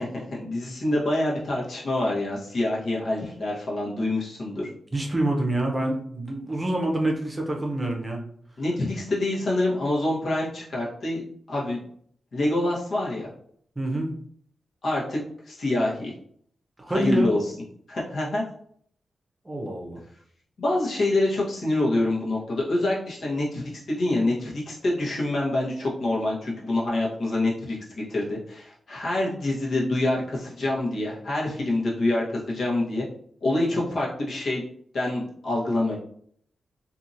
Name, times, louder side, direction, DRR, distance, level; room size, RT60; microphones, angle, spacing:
voice 1, 0.0-4.7 8.6-11.2 11.5-11.8 12.3-13.3 14.8-15.2 15.5-16.1 16.9-17.4 17.9-18.4 20.6-33.0 33.4-34.6 34.9-35.9, left 2 dB, 65° left, -5 dB, 1.1 m, -26 dB
voice 2, 4.9-8.2 13.8-14.1 16.8-17.3 19.4-20.0, right 1 dB, 20° right, 0 dB, 0.7 m, -26 dB
2.8 x 2.6 x 2.6 m, 0.63 s
cardioid pair, 75°, 0 cm